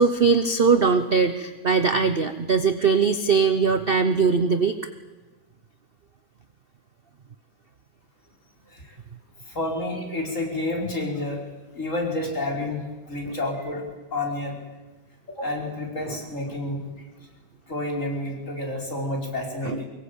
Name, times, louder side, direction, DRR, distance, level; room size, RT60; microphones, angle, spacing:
voice 1, 0.0-4.8 19.6-19.8, right 5 dB, 45° right, 10 dB, 0.8 m, -20 dB
voice 2, 9.4-11.4 11.7-13.8 14.1-14.6 15.3-16.8 17.7-19.8, left 2 dB, 40° left, 0 dB, 5.4 m, -29 dB
24.5 x 21.5 x 8.8 m, 1.2 s
omnidirectional pair, 2.2 m